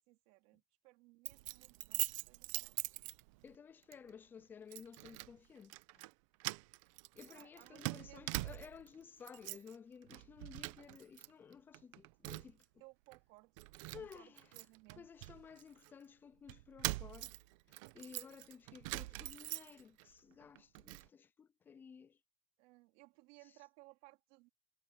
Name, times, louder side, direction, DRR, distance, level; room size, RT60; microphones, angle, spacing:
voice 1, 0.0-3.0 7.3-8.3 12.8-15.1 22.6-24.5, right 24 dB, 65° right, 2.8 m, -62 dB
Keys jangling, 1.3-3.6 3.9-4.1 4.7-5.3 5.6-6.1 6.4-8.9 9.2-9.8 10.1-11.3 11.5-12.6 13.1-13.2 13.6-15.9 16.5-20.0 20.4-21.1, right 22 dB, 85° right, 0.7 m, -43 dB
voice 2, 3.4-6.0 7.1-12.6 13.9-14.4 15.0-17.3 17.9-22.2, left 7 dB, 10° left, 0.3 m, -55 dB
cardioid pair, 175°, 16 cm